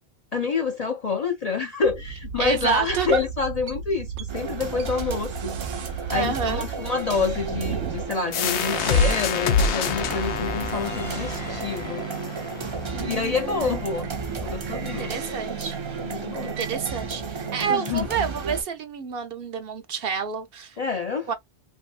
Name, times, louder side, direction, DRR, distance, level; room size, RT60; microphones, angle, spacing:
voice 1, 0.3-5.3 6.1-12.0 12.4-12.5 13.0-14.1 14.4-15.2 16.0-16.5 17.7-18.1 20.8-21.3, left 4 dB, 50° left, 0.5 m, -27 dB
sound 1, 1.8-17.8, right 7 dB, 90° right, 1.0 m, -36 dB
voice 2, 2.4-3.2 6.1-6.6 12.9-13.8 14.9-15.8 16.1-20.8 21.3-21.4, right 6 dB, 60° right, 0.8 m, -29 dB
sound 2, 4.3-18.6, right 4 dB, 35° right, 0.5 m, -34 dB
sound 3, 8.3-13.7, left 5 dB, 80° left, 0.9 m, -26 dB
3.0 x 2.7 x 2.3 m
omnidirectional pair, 1.1 m